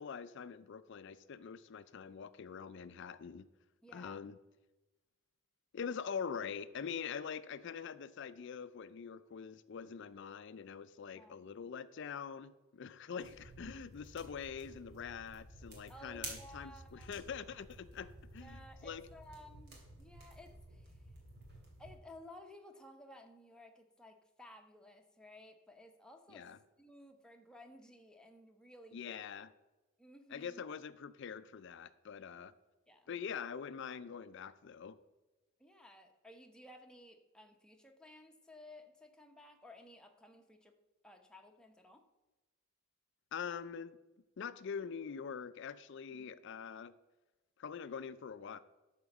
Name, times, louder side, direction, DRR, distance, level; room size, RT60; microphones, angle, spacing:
voice 1, 0.0-3.5 3.9-4.4 5.7-19.0 26.3-26.6 28.9-29.5 30.3-32.5 33.1-35.0 43.3-44.0 44.4-46.9 47.6-48.6, left 6 dB, 60° left, 14 dB, 0.4 m, -44 dB
voice 2, 3.8-4.2 11.1-11.5 13.7-13.9 15.9-17.3 18.4-21.1 21.8-26.5 26.8-29.3 30.0-30.6 32.9-33.2 35.6-40.7 41.0-42.0 46.1-46.4, left 1 dB, 5° left, 3 dB, 0.9 m, -56 dB
sound 1, 13.2-22.0, right 2 dB, 55° right, 2.9 m, -52 dB
12.0 x 4.4 x 7.1 m, 1.1 s
head